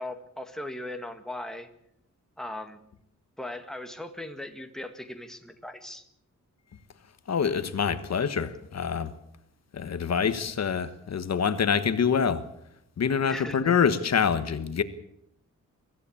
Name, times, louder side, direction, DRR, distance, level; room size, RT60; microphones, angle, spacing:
voice 1, 0.0-1.7 2.4-2.8 3.4-6.0 13.3-13.7, left 1 dB, ahead, 1.8 m, -38 dB
voice 2, 7.3-9.1 9.7-12.4 13.0-14.8, left 6 dB, 60° left, 1.3 m, -26 dB
24.0 x 15.0 x 8.6 m
wide cardioid pair, 165°, 30 cm